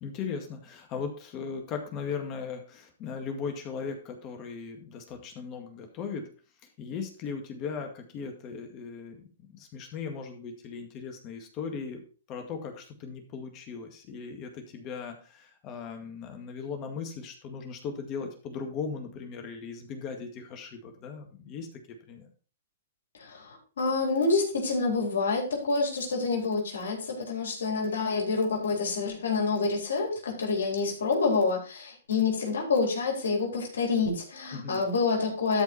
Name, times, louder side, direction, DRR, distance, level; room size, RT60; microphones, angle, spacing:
voice 1, 0.0-6.3 6.8-12.0 12.3-22.3 34.5-34.8, left 5 dB, 35° left, 4 dB, 2.0 m, -38 dB
voice 2, 23.2-35.6, left 4 dB, 80° left, -1 dB, 3.9 m, -27 dB
13.0 x 4.9 x 4.4 m, 0.37 s
hypercardioid pair, 130°, 0 cm